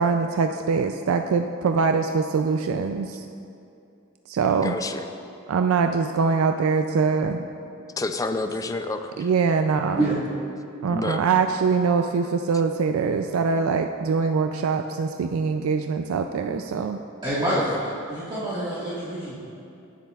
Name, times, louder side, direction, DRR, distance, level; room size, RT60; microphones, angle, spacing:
voice 1, 0.0-3.2 4.3-4.8 5.5-7.4 9.2-10.1 10.8-17.0, right 5 dB, 90° right, 6 dB, 0.4 m, -23 dB
voice 2, 4.5-5.0 8.0-9.3 10.9-11.2 17.5-17.8, left 2 dB, 15° left, 8 dB, 0.4 m, -29 dB
voice 3, 17.2-17.7 18.1-19.4, right 1 dB, 25° right, -10 dB, 1.6 m, -26 dB
17.0 x 7.5 x 2.4 m, 2.6 s
head